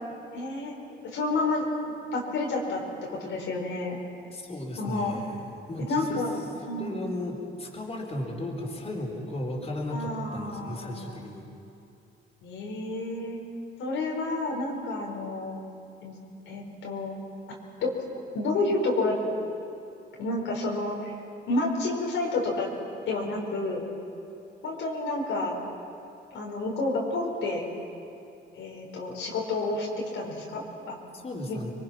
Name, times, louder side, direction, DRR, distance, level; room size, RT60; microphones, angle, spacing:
voice 1, 0.3-0.7 1.1-2.8 3.1-4.0 4.8-5.2 5.9-6.4 6.6-7.0 9.9-11.2 12.4-13.4 13.8-15.6 16.0-16.1 16.5-17.2 17.8-17.9 18.3-19.2 20.2-21.1 21.5-22.7 23.1-23.9 24.6-25.5 26.3-27.6 28.5-29.9 30.1-31.0 31.5-31.6, left 2 dB, 85° left, -2 dB, 4.8 m, -30 dB
voice 2, 4.3-5.4 5.7-6.2 6.7-11.5 31.1-31.7, left 1 dB, 30° left, -1 dB, 4.4 m, -35 dB
26.5 x 23.0 x 5.9 m, 2.5 s
cardioid pair, 90°, 20 cm